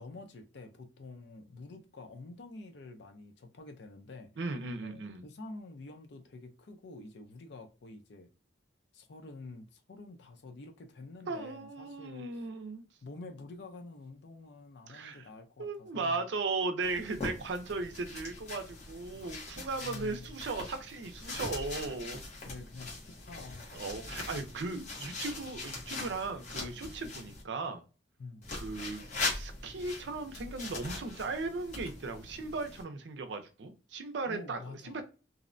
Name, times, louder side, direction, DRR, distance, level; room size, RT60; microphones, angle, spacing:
voice 1, 0.0-4.3 4.8-8.3 8.9-12.5 13.0-16.2 19.8-20.4 22.4-23.7 28.2-28.5 34.2-35.0, left 3 dB, 70° left, 0.5 m, -48 dB
voice 2, 4.4-5.2 11.3-12.8 14.9-15.3 15.6-22.2 23.7-27.8 28.5-29.0 29.3-35.0, right 3 dB, 75° right, 0.5 m, -37 dB
sound 1, 16.8-27.4 28.4-32.8, left 3 dB, 40° left, 0.8 m, -41 dB
2.6 x 2.1 x 2.5 m
head